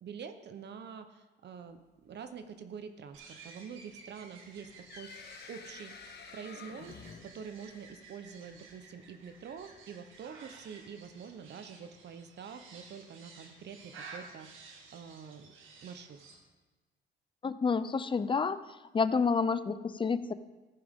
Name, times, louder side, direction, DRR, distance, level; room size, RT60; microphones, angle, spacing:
voice 1, 0.0-5.9 6.3-15.5 15.8-16.2, right 6 dB, 60° right, 8 dB, 0.9 m, -46 dB
sound 1, 3.1-16.4, right 4 dB, 80° right, 1.9 m, -53 dB
sound 2, 4.4-8.1, left 6 dB, 55° left, 1.2 m, -50 dB
voice 2, 17.4-18.6 18.9-20.3, left 5 dB, 25° left, 14 dB, 0.5 m, -29 dB
14.0 x 10.5 x 3.6 m, 1.2 s
cardioid pair, 90°, 20 cm